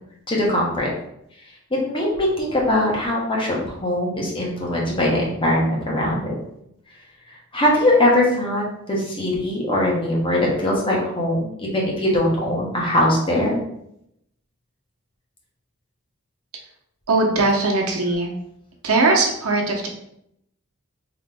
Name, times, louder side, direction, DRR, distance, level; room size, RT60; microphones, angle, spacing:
voice 1, 0.3-0.9 1.7-6.3 7.5-13.6, left 1 dB, 25° left, -4 dB, 1.1 m, -21 dB
voice 2, 17.1-18.3 18.8-19.9, right 3 dB, 85° right, 0 dB, 0.9 m, -20 dB
3.8 x 3.1 x 3.4 m, 0.77 s
head